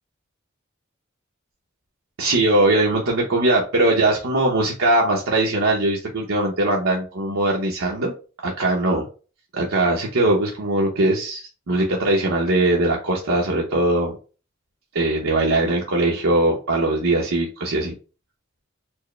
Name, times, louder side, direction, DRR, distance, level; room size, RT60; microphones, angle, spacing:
voice 1, 2.2-8.1 8.4-9.1 9.5-14.1 14.9-17.9, right 2 dB, 85° right, -2 dB, 0.8 m, -20 dB
4.5 x 2.0 x 3.2 m, 0.34 s
head